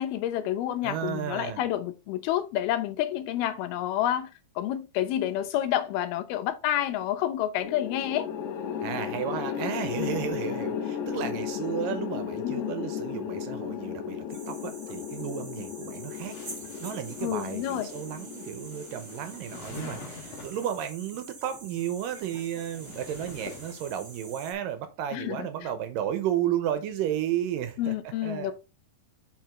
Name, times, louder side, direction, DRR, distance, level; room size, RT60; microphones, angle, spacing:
voice 1, 0.0-4.3 4.6-8.3 10.0-10.2 12.4-12.7 17.2-17.9 25.1-25.5 27.8-28.5, left 12 dB, 85° left, 2.7 m, -29 dB
voice 2, 0.8-1.6 8.8-16.4 16.8-27.9 28.2-28.5, right 10 dB, 75° right, 2.3 m, -33 dB
sound 1, 7.6-19.9, left 8 dB, 70° left, 1.9 m, -35 dB
sound 2, 14.3-24.5, right 3 dB, 45° right, 1.0 m, -46 dB
sound 3, 16.2-20.9 21.9-24.3, left 4 dB, 50° left, 2.5 m, -47 dB
7.7 x 5.0 x 3.6 m
omnidirectional pair, 4.3 m